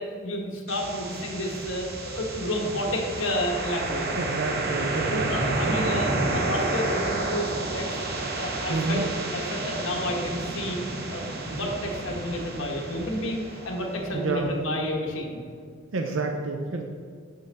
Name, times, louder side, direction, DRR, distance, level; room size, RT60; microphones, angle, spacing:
voice 1, 0.0-4.1 5.0-8.0 8.4-9.1 9.3-10.8 11.1-15.4, left 1 dB, 80° left, 0 dB, 1.1 m, -30 dB
sound 1, 0.7-14.6, right 2 dB, 50° right, 0.8 m, -31 dB
voice 2, 4.2-6.2 8.7-9.0 14.1-14.5 15.9-16.8, right 3 dB, 80° right, 3 dB, 0.5 m, -29 dB
6.8 x 5.4 x 3.4 m, 2.1 s
head